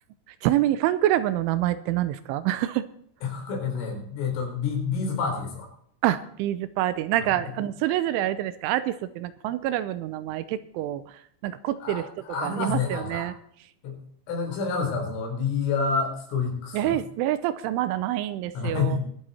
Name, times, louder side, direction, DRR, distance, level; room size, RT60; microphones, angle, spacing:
voice 1, 0.4-2.8 6.0-11.0 11.4-12.0 12.4-13.3 16.7-19.0, right 13 dB, 85° right, 14 dB, 3.1 m, -26 dB
voice 2, 3.2-5.7 7.2-7.4 11.8-13.3 13.8-14.0 14.3-17.0 18.5-19.0, left 5 dB, 85° left, 1 dB, 6.6 m, -28 dB
23.0 x 8.0 x 4.2 m, 0.66 s
omnidirectional pair, 5.7 m